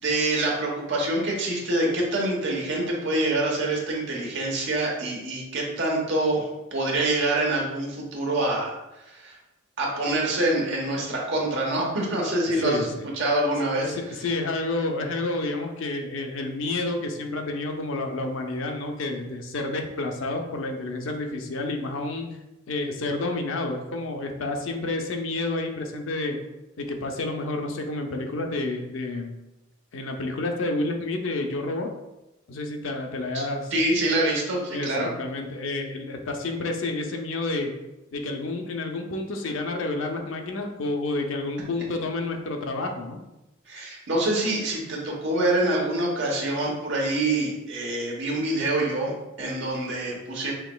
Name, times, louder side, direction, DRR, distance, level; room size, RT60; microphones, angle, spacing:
voice 1, 0.0-8.7 9.1-9.4 9.8-12.9 13.1-13.9 33.3-33.4 33.7-35.1 43.7-50.5, right 2 dB, 60° right, -2 dB, 1.1 m, -26 dB
voice 2, 12.6-13.1 13.8-22.4 22.7-26.4 26.8-29.3 29.9-31.9 32.5-33.7 34.7-37.7 38.1-43.2, left 2 dB, 70° left, 3 dB, 0.6 m, -29 dB
5.8 x 2.9 x 2.3 m, 0.96 s
head